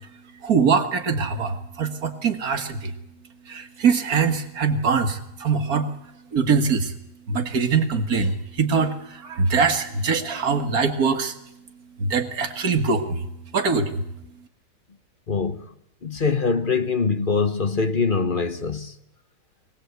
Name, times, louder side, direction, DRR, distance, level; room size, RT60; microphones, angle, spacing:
voice 1, 0.4-2.9 3.5-5.9 6.3-6.9 7.3-11.3 12.0-13.3 13.5-14.0, right 5 dB, 55° right, 2.1 m, -23 dB
voice 2, 15.3-15.6 16.0-18.9, left 4 dB, 40° left, 0.9 m, -23 dB
22.0 x 18.5 x 8.1 m
omnidirectional pair, 1.9 m